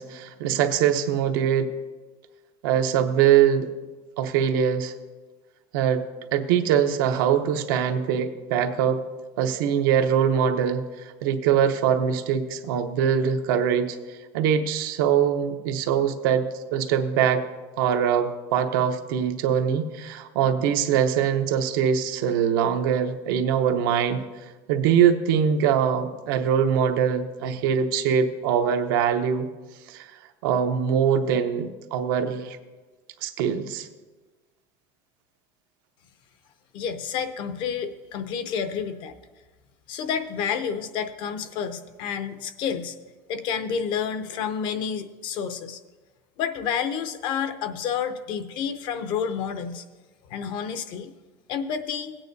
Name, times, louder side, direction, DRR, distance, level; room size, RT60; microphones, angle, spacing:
voice 1, 0.0-1.7 2.6-3.7 4.2-4.9 5.7-6.0 6.3-9.0 9.4-14.0 14.3-16.5 16.7-17.4 17.8-24.2 24.7-29.5 29.9-30.1 30.4-32.6 33.2-33.9, right 8 dB, 80° right, 6 dB, 0.8 m, -23 dB
voice 2, 36.7-39.1 39.9-42.9 43.3-45.8 46.4-49.8 50.3-51.1 51.5-52.2, left 7 dB, 45° left, 10 dB, 0.6 m, -29 dB
16.5 x 8.9 x 2.7 m, 1.3 s
cardioid pair, 160°, 11 cm